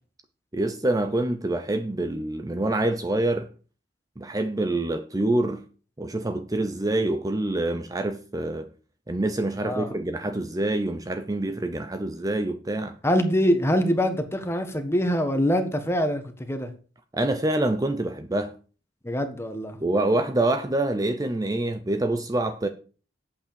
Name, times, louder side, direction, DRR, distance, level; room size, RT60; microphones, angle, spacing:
voice 1, 0.5-3.5 4.2-5.6 6.0-8.7 9.1-13.0 17.1-18.5 19.8-22.7, right 2 dB, 20° right, 0.7 m, -26 dB
voice 2, 9.6-9.9 13.0-16.7 19.0-19.8, equal, 15° left, 1.5 m, -24 dB
8.5 x 8.4 x 6.9 m
head